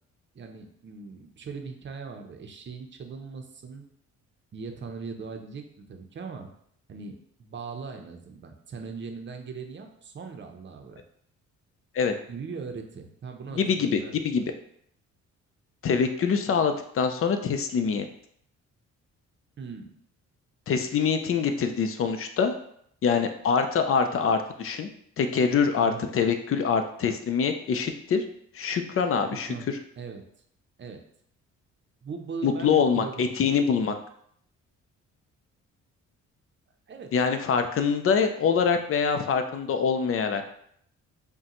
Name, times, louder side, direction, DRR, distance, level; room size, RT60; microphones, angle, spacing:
voice 1, 0.3-3.8 4.5-6.5 6.9-11.0 12.3-14.2 19.6-19.9 25.8-26.1 29.3-29.7 30.0-30.2 30.8-31.0 32.0-33.5 36.9-37.1, right 5 dB, 40° right, 4 dB, 0.7 m, -39 dB
voice 2, 13.5-14.5 15.8-18.1 20.7-22.5 23.0-24.9 25.2-28.2 28.5-29.5 32.4-33.9 37.1-40.5, left 6 dB, 45° left, 7 dB, 0.5 m, -24 dB
5.4 x 2.2 x 3.0 m, 0.67 s
cardioid pair, 90°, 30 cm